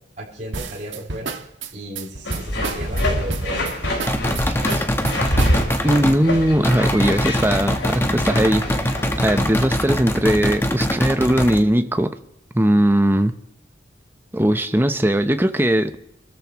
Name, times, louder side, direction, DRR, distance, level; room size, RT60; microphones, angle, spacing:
voice 1, 0.2-1.4 1.7-3.7, right 1 dB, 40° right, -9 dB, 5.7 m, -34 dB
sound 1, 0.5-6.0, right 3 dB, 85° right, 1.4 m, -31 dB
sound 2, 2.2-9.6, left 1 dB, 80° left, 5.0 m, -26 dB
sound 3, 4.1-6.2 6.6-11.6, equal, 15° left, 1.1 m, -23 dB
voice 2, 4.5-4.9 5.8-8.7 9.2-12.1 12.5-13.3 14.3-16.0, right 1 dB, 10° right, 9 dB, 0.8 m, -19 dB
29.5 x 13.5 x 3.1 m, 0.79 s
head